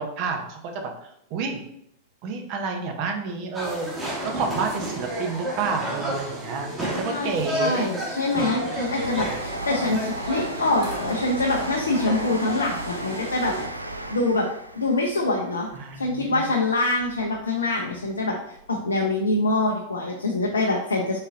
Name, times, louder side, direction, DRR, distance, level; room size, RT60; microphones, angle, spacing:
voice 1, 0.0-1.6 2.2-7.9 15.7-16.4, right 4 dB, 45° right, 3 dB, 0.7 m, -30 dB
sound 1, 3.5-13.7, right 1 dB, 15° right, 1.4 m, -32 dB
voice 2, 7.0-13.6 14.1-14.5 14.7-15.7 16.0-18.4 18.7-21.2, left 2 dB, 75° left, 0 dB, 0.5 m, -25 dB
Train, 7.9-17.4 17.8-18.7 19.0-19.1, right 1 dB, 85° right, 0.3 m, -36 dB
4.1 x 3.7 x 2.5 m, 0.75 s
figure-of-eight pair, 90°, 0 cm